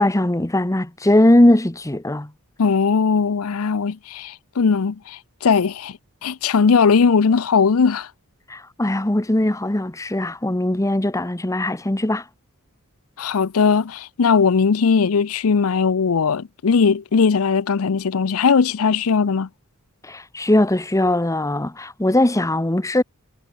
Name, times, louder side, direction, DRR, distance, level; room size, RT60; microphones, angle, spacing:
voice 1, 0.0-2.3 8.5-12.2 20.0-23.0, left 1 dB, 15° left, 0.9 m, -19 dB
voice 2, 2.6-5.9 6.2-8.1 13.2-19.5, left 5 dB, 70° left, 0.6 m, -19 dB
head